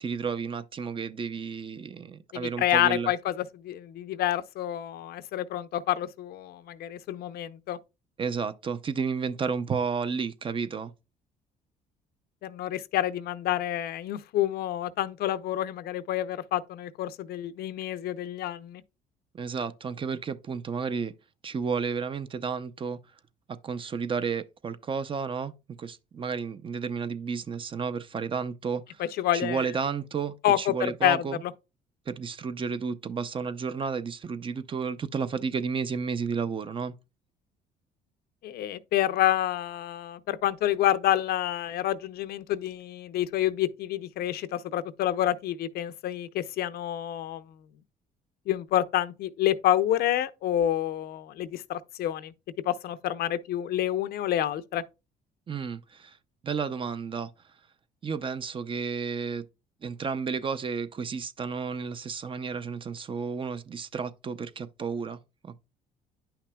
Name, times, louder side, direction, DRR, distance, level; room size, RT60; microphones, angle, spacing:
voice 1, 0.0-3.1 8.2-10.9 19.3-21.1 21.4-23.0 23.5-25.5 25.8-29.0 29.3-31.4 32.1-36.9 55.5-56.2 56.4-57.3 58.0-59.4 59.8-65.6, right 5 dB, 30° right, 0.5 m, -32 dB
voice 2, 2.3-7.8 12.4-18.8 29.0-29.7 30.4-31.2 38.4-47.4 48.5-52.3 52.7-54.8, left 12 dB, 70° left, 0.6 m, -28 dB
9.9 x 5.8 x 2.3 m
cardioid pair, 110°, 17 cm